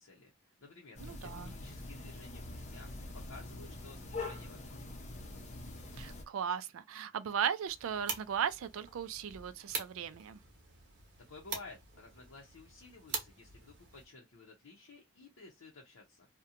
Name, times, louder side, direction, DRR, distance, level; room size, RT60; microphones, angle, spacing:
voice 1, 0.0-5.0 11.3-16.3, left 3 dB, 80° left, 0.6 m, -54 dB
sound 1, 1.0-6.2, left 2 dB, 35° left, 0.6 m, -44 dB
voice 2, 1.0-1.5 6.0-10.4, right 8 dB, 75° right, 0.3 m, -37 dB
sound 2, 7.7-14.1, right 5 dB, 55° right, 0.9 m, -44 dB
2.7 x 2.1 x 2.4 m
head